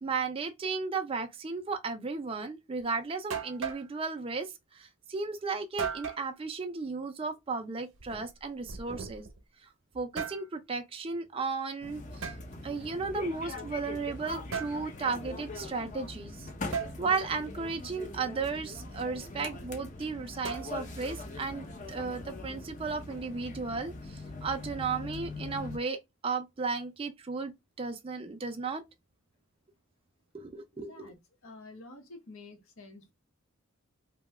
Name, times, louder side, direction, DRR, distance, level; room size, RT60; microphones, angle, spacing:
voice 1, 0.0-9.3 9.9-12.3 12.6-16.5 17.0-27.5 27.8-28.8 30.3-31.1, right 4 dB, 25° right, 0.4 m, -35 dB
sound 1, 2.8-2.9 3.3-3.9 5.8-6.3 7.9-9.4 9.9-10.5 12.2-12.4 14.5-14.8 16.7-17.0 20.4-21.0, right 6 dB, 70° right, 0.7 m, -37 dB
sound 2, 11.8-25.8, left 2 dB, 35° left, 0.5 m, -42 dB
voice 2, 30.7-33.1, left 2 dB, 75° left, 0.8 m, -49 dB
2.7 x 2.2 x 3.1 m
head